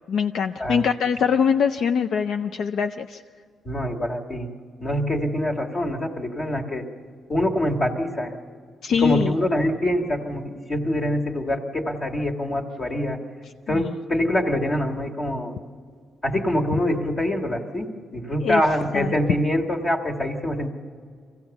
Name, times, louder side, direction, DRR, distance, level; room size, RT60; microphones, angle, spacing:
voice 1, 0.1-3.2 8.8-9.3 13.7-13.9 18.4-18.6 18.9-19.1, left 6 dB, 65° left, 8 dB, 0.5 m, -23 dB
voice 2, 3.6-4.5 4.8-6.9 7.3-8.3 9.0-13.2 13.7-15.5 16.2-20.7, left 1 dB, 30° left, 1 dB, 1.7 m, -25 dB
24.0 x 16.0 x 7.1 m, 2.1 s
cardioid pair, 160°, 0 cm